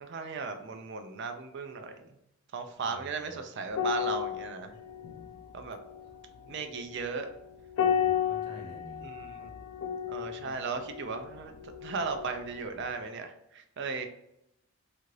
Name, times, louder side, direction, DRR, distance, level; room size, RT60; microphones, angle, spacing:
voice 1, 0.0-2.1 2.5-4.7 5.5-5.8 6.5-7.3 9.0-9.5 10.1-14.0, right 4 dB, 50° right, 7 dB, 0.4 m, -36 dB
voice 2, 2.7-3.3 7.8-9.1, left 1 dB, 85° right, 0 dB, 1.0 m, -48 dB
sound 1, 3.7-12.4 12.7-12.9, left 8 dB, 75° left, 0.3 m, -34 dB
2.7 x 2.4 x 3.1 m, 0.80 s
head